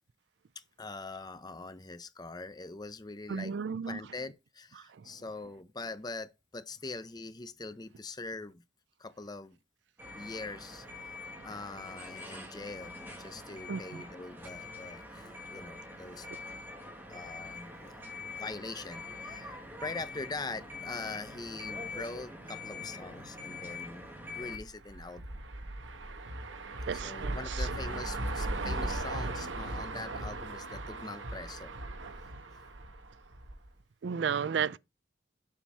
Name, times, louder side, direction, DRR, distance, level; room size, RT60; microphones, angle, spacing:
voice 1, 0.5-3.5 3.9-8.6 9.0-9.6 10.1-16.3 17.1-18.1 18.4-25.4 26.9-31.8, left 3 dB, 20° left, 0.6 m, -43 dB
voice 2, 3.3-4.0 13.7-13.8 26.9-27.7 34.0-34.8, right 6 dB, 65° right, 0.4 m, -33 dB
sound 1, 10.0-24.6, left 3 dB, 10° right, 2.0 m, -44 dB
sound 2, 24.4-33.7, right 2 dB, 90° right, 1.2 m, -38 dB
7.2 x 4.5 x 5.6 m
head